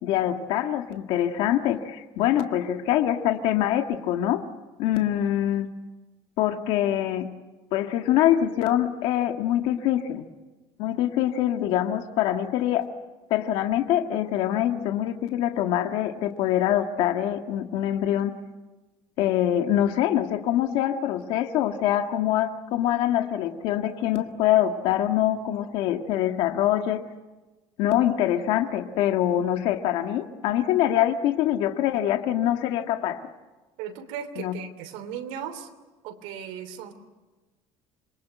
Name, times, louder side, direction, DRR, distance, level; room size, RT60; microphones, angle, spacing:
voice 1, 0.0-4.4 4.8-5.7 6.4-7.3 7.7-10.3 10.8-12.9 13.3-18.3 19.2-27.0 27.8-33.2 34.4-34.5, left 11 dB, 65° left, 5 dB, 1.7 m, -24 dB
voice 2, 33.8-35.7 36.0-36.9, right 8 dB, 90° right, 8 dB, 3.2 m, -36 dB
27.0 x 23.0 x 9.3 m, 1.2 s
cardioid pair, 165°, 10 cm